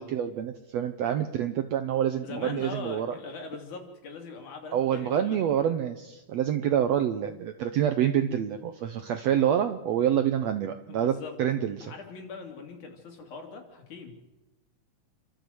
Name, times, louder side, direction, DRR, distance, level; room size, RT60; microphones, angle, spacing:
voice 1, 0.0-3.1 4.7-11.9, right 9 dB, 75° right, 9 dB, 1.6 m, -27 dB
voice 2, 2.2-5.4 10.9-11.3 11.8-14.1, left 4 dB, 60° left, 3 dB, 4.1 m, -41 dB
28.5 x 13.0 x 7.9 m, 1.0 s
omnidirectional pair, 3.9 m